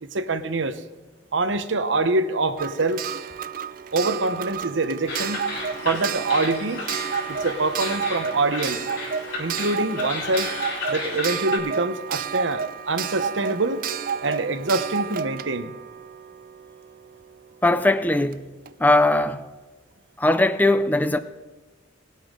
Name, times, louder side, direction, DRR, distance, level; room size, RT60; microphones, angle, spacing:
voice 1, 0.0-0.8 1.3-3.0 3.9-5.5 5.8-6.9 7.3-8.8 9.4-10.5 10.9-13.8 14.2-15.7, right 2 dB, 75° right, 0.9 m, -25 dB
Clock, 2.6-17.2 18.3-18.4 18.6-18.7, right 7 dB, 45° right, 0.4 m, -31 dB
sound 1, 5.1-11.6, left 3 dB, 70° left, 3.9 m, -33 dB
voice 2, 17.6-18.5 18.8-19.5 20.2-21.2, left 2 dB, 10° left, 0.5 m, -20 dB
19.5 x 8.5 x 3.8 m
head